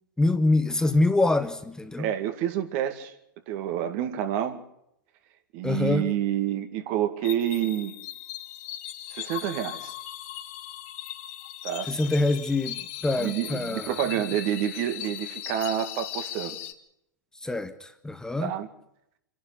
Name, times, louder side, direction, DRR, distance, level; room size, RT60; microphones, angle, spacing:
voice 1, 0.2-2.1 5.6-6.1 11.9-14.0 17.4-18.5, left 2 dB, 5° left, 1.4 m, -25 dB
voice 2, 2.0-3.1 3.5-4.6 5.5-7.9 9.1-9.9 11.6-11.9 13.2-16.6 18.4-18.7, right 11 dB, 50° right, 2.3 m, -28 dB
sound 1, 7.2-16.7, left 13 dB, 50° left, 1.8 m, -38 dB
27.5 x 11.5 x 9.6 m
figure-of-eight pair, 95°, 10 cm